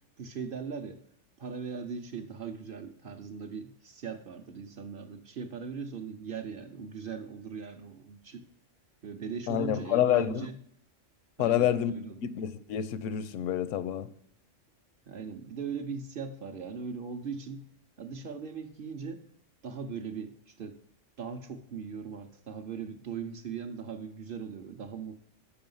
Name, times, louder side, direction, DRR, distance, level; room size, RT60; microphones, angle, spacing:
voice 1, 0.2-1.0 1.4-8.4 9.0-10.6 11.4-11.7 11.9-12.1 15.1-17.6 18.0-19.2 19.6-20.8 21.2-25.2, right 6 dB, 55° right, 6 dB, 0.7 m, -39 dB
voice 2, 9.5-10.5 11.4-11.9 12.2-14.1, left 10 dB, 80° left, 14 dB, 0.9 m, -28 dB
6.9 x 5.2 x 5.4 m, 0.68 s
omnidirectional pair, 1.3 m